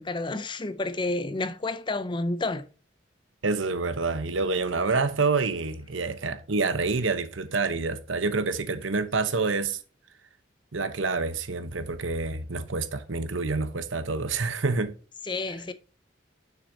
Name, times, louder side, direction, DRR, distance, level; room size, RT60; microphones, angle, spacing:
voice 1, 0.0-2.7 15.3-15.7, left 2 dB, 25° left, 0.5 m, -30 dB
voice 2, 3.4-9.8 10.7-14.9, right 4 dB, 85° right, 1.0 m, -27 dB
6.7 x 6.5 x 2.8 m
head